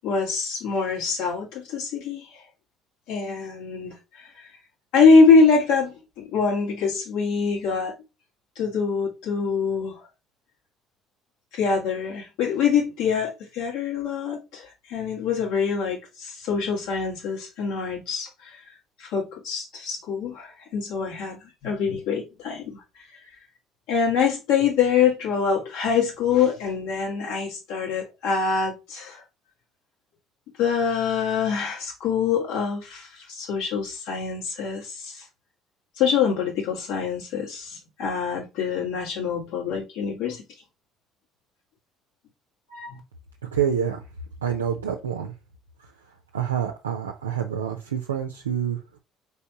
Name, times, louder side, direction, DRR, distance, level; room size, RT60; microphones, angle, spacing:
voice 1, 0.0-2.4 3.1-4.5 4.9-7.9 8.6-10.0 11.5-18.6 19.0-22.8 23.9-29.2 30.6-35.2 36.0-40.4 42.7-43.0, left 5 dB, 70° left, 1.9 m, -24 dB
voice 2, 43.5-44.0 44.4-45.3 46.3-49.0, right 8 dB, 90° right, 0.5 m, -27 dB
4.4 x 3.3 x 2.8 m
hypercardioid pair, 55°, 0 cm